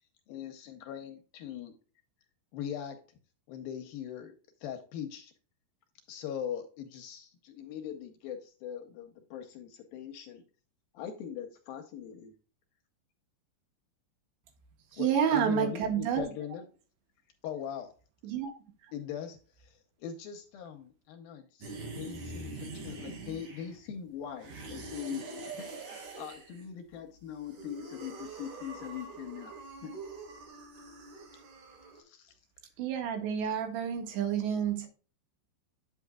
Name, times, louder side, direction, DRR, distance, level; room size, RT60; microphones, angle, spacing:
voice 1, 0.3-1.7 2.5-3.0 3.5-5.3 6.1-10.4 10.9-12.3 15.0-16.7 17.4-17.9 18.9-29.9 32.0-32.3, left 9 dB, 75° left, 6 dB, 2.2 m, -41 dB
voice 2, 14.9-16.2 18.2-18.5 32.8-34.9, right 8 dB, 80° right, 4 dB, 3.9 m, -29 dB
sound 1, 21.6-23.9 24.4-26.6 27.3-32.0, right 3 dB, 50° right, 3.1 m, -44 dB
8.9 x 8.2 x 2.3 m, 0.38 s
omnidirectional pair, 5.0 m